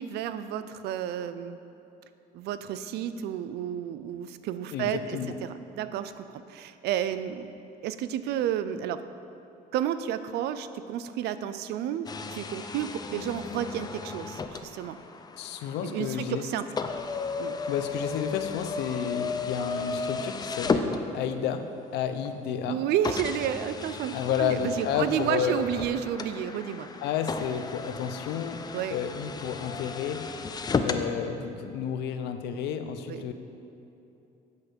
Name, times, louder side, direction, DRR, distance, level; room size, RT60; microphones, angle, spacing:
voice 1, 0.0-1.6 2.3-7.5 7.8-9.0 9.7-15.0 15.8-16.7 17.4-17.6 22.7-26.9 28.7-29.0 33.1-33.3, right 10 dB, 75° right, 12 dB, 0.4 m, -31 dB
voice 2, 4.7-5.3 15.4-16.4 17.7-21.7 21.9-22.8 24.1-25.6 27.0-28.6 28.9-30.3 30.8-33.3, left 8 dB, 85° left, 8 dB, 0.6 m, -31 dB
sound 1, 12.1-21.5 22.3-22.4 23.0-31.1, left 4 dB, 25° left, 0.4 m, -34 dB
8.2 x 4.3 x 6.7 m, 2.9 s
cardioid pair, 110°, 17 cm